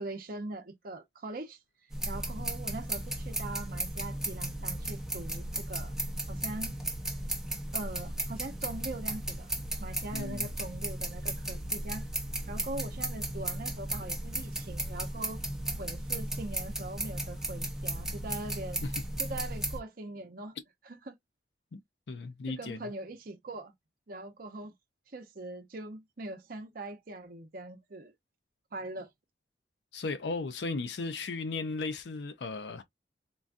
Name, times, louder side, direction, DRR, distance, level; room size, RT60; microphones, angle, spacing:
voice 1, 0.0-1.6 2.1-5.9 6.3-6.7 7.7-9.5 9.8-12.1 12.5-15.4 15.8-18.9 19.2-20.6 20.8-21.1 22.5-23.7 24.1-24.7 25.1-28.1 28.7-29.1, right 2 dB, 55° right, 0.7 m, -41 dB
sound 1, 1.9-19.8, right 1 dB, 5° right, 0.7 m, -35 dB
voice 2, 10.1-10.5 21.7-21.8 22.1-22.8 29.9-32.8, left 3 dB, 70° left, 0.5 m, -36 dB
3.8 x 2.2 x 2.5 m
head